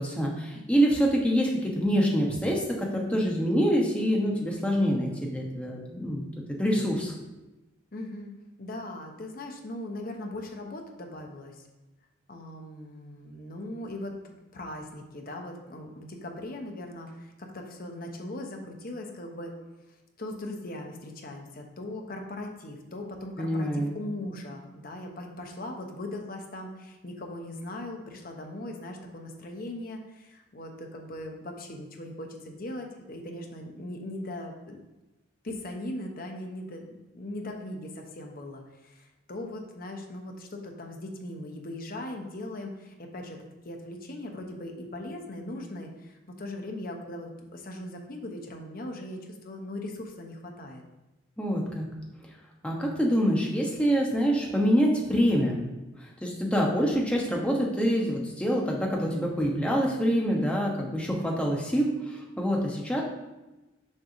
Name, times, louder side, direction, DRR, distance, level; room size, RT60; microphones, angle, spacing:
voice 1, 0.0-7.1 23.4-24.0 51.4-51.9 52.6-55.6 56.0-63.0, equal, 5° left, -2 dB, 1.1 m, -26 dB
voice 2, 7.9-8.3 8.6-11.7 12.3-19.5 20.2-34.8 35.4-36.9 37.1-43.4 43.6-50.8, left 1 dB, 50° left, 3 dB, 0.9 m, -39 dB
6.5 x 3.5 x 5.9 m, 1.0 s
head